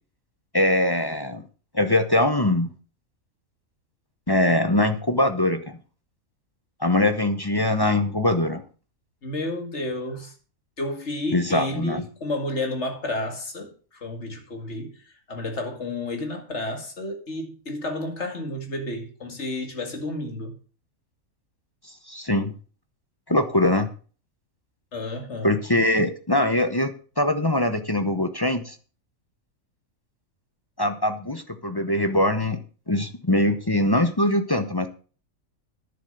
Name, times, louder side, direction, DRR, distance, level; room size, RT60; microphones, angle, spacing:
voice 1, 0.5-1.4 1.7-2.7 4.3-5.8 6.8-8.6 11.3-12.0 22.1-22.5 23.3-23.9 25.4-28.8 30.8-32.6 32.9-34.9, left 1 dB, 20° left, 0.8 m, -22 dB
voice 2, 9.2-10.3 10.8-20.5 24.9-25.6, left 2 dB, 50° left, 2.4 m, -31 dB
10.5 x 7.5 x 6.6 m
omnidirectional pair, 1.5 m